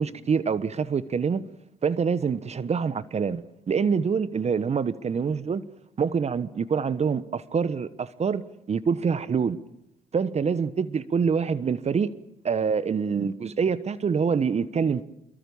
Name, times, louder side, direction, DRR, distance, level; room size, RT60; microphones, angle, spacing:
voice 1, 0.0-1.4 1.8-5.6 6.0-9.6 10.1-12.1 12.4-15.0, right 6 dB, 40° right, 1.2 m, -26 dB
26.5 x 23.0 x 7.2 m
hypercardioid pair, 55°, 17 cm